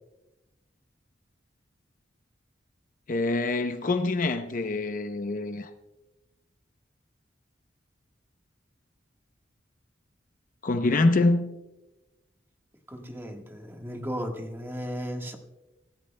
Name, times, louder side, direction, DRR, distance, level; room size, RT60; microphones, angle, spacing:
voice 1, 3.1-5.7 10.6-11.6, left 2 dB, 45° left, 0.7 m, -25 dB
voice 2, 12.9-15.4, equal, 10° right, 1.4 m, -35 dB
25.5 x 14.0 x 2.2 m
head